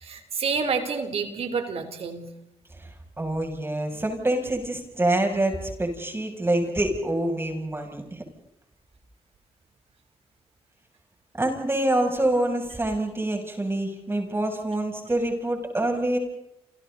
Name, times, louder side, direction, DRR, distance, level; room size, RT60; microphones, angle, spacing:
voice 1, 0.0-2.3, right 5 dB, 70° right, 7 dB, 3.7 m, -28 dB
voice 2, 3.2-8.2 11.4-16.2, right 1 dB, 20° right, 2 dB, 7.5 m, -26 dB
28.5 x 28.5 x 4.1 m, 0.83 s
cardioid pair, 70°, 11 cm